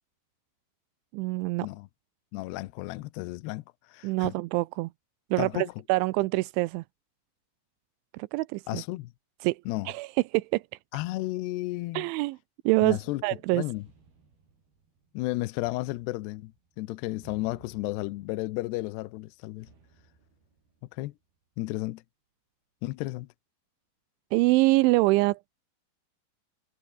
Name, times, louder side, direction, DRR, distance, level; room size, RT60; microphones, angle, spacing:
voice 1, 1.1-1.7 4.0-4.9 5.3-6.8 8.1-8.8 9.4-9.6 9.9-10.1 10.3-10.6 11.9-12.4 12.7-13.6 24.3-25.6, right 21 dB, 90° right, 3.1 m, -25 dB
voice 2, 2.3-4.3 5.4-5.7 8.7-9.1 9.7-9.9 10.9-12.1 12.8-13.2 13.5-13.9 15.1-19.7 20.9-21.1 21.6-22.0 22.8-23.3, left 19 dB, 75° left, 2.7 m, -33 dB
sound 1, 12.9-21.5, right 4 dB, 55° right, 8.7 m, -61 dB
omnidirectional pair, 5.3 m